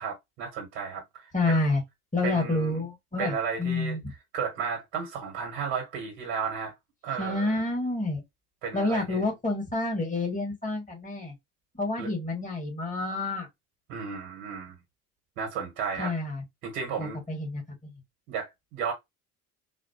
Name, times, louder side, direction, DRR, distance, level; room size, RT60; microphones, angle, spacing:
voice 1, 0.0-1.6 2.2-2.8 3.2-4.0 4.3-6.7 7.0-7.6 8.6-9.3 12.0-12.1 13.9-14.8 15.4-16.1 16.6-17.2 18.3-18.9, right 6 dB, 75° right, 1.4 m, -33 dB
voice 2, 1.3-1.8 2.1-4.0 7.2-8.2 8.7-11.3 11.8-13.5 16.0-16.4 17.0-17.6, left 2 dB, 15° left, 2.2 m, -28 dB
4.1 x 2.2 x 2.7 m
hypercardioid pair, 60°, 46 cm